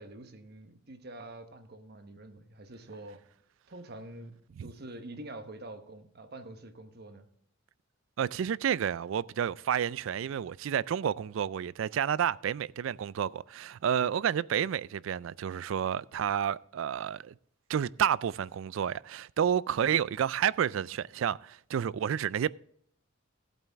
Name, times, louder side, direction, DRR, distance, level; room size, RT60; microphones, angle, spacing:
voice 1, 0.0-3.2 3.7-7.3, right 2 dB, 50° right, 1.1 m, -46 dB
voice 2, 8.2-17.3 17.7-22.5, right 8 dB, 65° right, 0.3 m, -30 dB
15.0 x 8.4 x 3.5 m
head